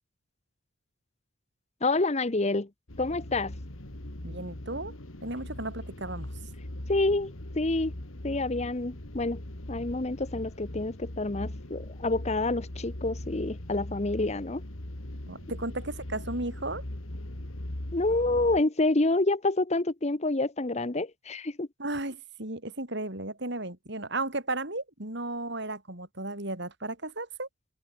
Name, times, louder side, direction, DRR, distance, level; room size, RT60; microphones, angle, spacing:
voice 1, 1.8-2.7 3.0-3.5 6.9-7.9 8.2-9.4 9.7-14.6 17.9-21.7, left 2 dB, 30° left, 0.9 m, -28 dB
sound 1, 2.9-18.6, left 1 dB, 80° left, 2.7 m, -40 dB
voice 2, 4.2-6.3 15.3-16.8 21.8-27.5, right 2 dB, 55° right, 5.7 m, -35 dB
head